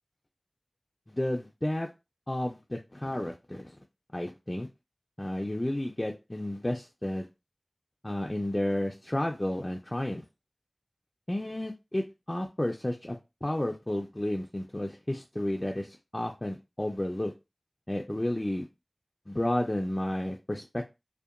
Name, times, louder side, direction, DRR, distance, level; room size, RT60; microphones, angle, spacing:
voice 1, 1.1-1.9 2.3-3.8 4.1-4.7 5.2-7.3 8.0-10.2 11.3-17.3 17.9-18.7 19.3-20.8, left 1 dB, 30° left, 1 dB, 0.3 m, -32 dB
2.7 x 2.1 x 2.4 m, 0.26 s
wide cardioid pair, 50°, 0 cm